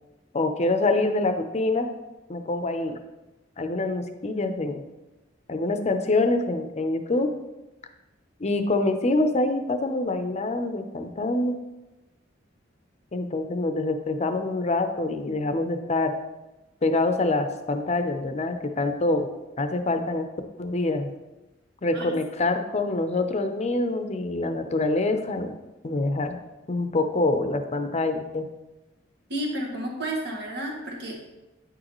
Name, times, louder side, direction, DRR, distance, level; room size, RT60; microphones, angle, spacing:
voice 1, 0.3-1.9 2.3-3.0 3.6-4.8 5.5-7.3 8.4-11.6 13.1-16.1 16.8-19.3 19.6-20.3 20.6-21.1 21.8-25.5 25.8-26.4 26.7-28.5, left 2 dB, 35° left, 7 dB, 0.6 m, -25 dB
voice 2, 29.3-31.2, right 1 dB, 60° right, -1 dB, 1.6 m, -31 dB
9.4 x 6.4 x 3.1 m, 1.0 s
head